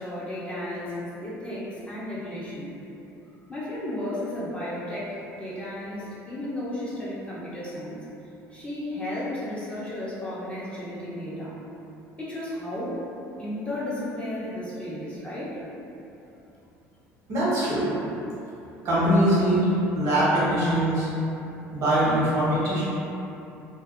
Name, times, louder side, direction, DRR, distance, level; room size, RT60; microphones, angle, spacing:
voice 1, 0.0-2.7 3.5-8.0 8.5-11.6 12.2-13.0 13.4-15.6, left 1 dB, 15° left, -9 dB, 0.7 m, -33 dB
voice 2, 17.3-17.9 18.8-19.6 19.9-21.1 21.7-22.8, right 1 dB, 65° right, -9 dB, 1.2 m, -22 dB
2.6 x 2.3 x 2.4 m, 2.9 s
supercardioid pair, 85°, 7 cm